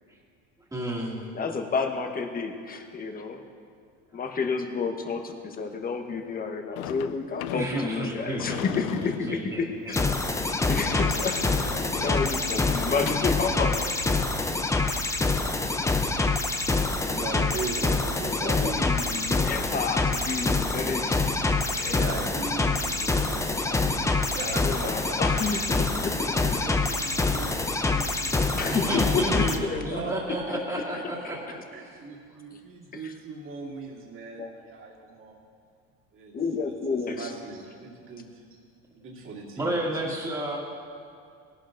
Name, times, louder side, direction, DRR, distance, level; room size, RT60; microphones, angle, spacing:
voice 1, 0.7-1.2 7.5-8.8 9.3-9.9 28.7-29.6 29.8-31.4 39.6-40.6, right 1 dB, 10° right, -5 dB, 2.3 m, -31 dB
voice 2, 1.3-3.4 4.1-10.0 10.7-11.7 12.0-13.9 18.2-21.3 21.8-22.0 23.6-23.8 24.4-26.6 28.5-30.0 32.9-33.1 34.3-34.5 36.3-37.3, left 4 dB, 25° left, 5 dB, 1.1 m, -30 dB
Sliding door / Slam, 6.8-13.4, left 14 dB, 80° left, 0.5 m, -37 dB
sound 1, 9.9-29.6, left 3 dB, 10° left, 0.6 m, -26 dB
voice 3, 16.9-19.7 21.9-25.2 26.4-29.4 29.8-30.5 30.9-31.4 31.7-35.4 36.1-36.4 36.6-38.4 38.9-40.4, right 3 dB, 40° right, -3 dB, 2.6 m, -40 dB
18.0 x 11.5 x 2.6 m, 2.3 s
supercardioid pair, 115°, 32 cm